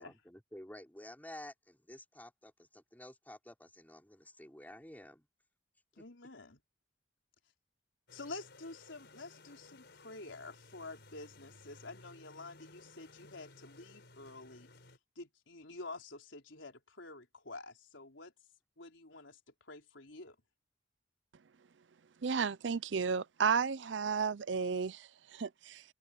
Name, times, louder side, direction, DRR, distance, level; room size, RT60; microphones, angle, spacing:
voice 1, 0.0-5.3 5.9-6.0, left 1 dB, 10° left, 3.8 m, -51 dB
voice 2, 6.0-6.6 8.1-14.7 15.2-18.3 18.8-20.4, left 3 dB, 90° left, 4.0 m, -49 dB
sound 1, 8.1-15.0, left 2 dB, 65° left, 5.7 m, -58 dB
voice 3, 22.2-25.8, right 6 dB, 70° right, 0.5 m, -33 dB
head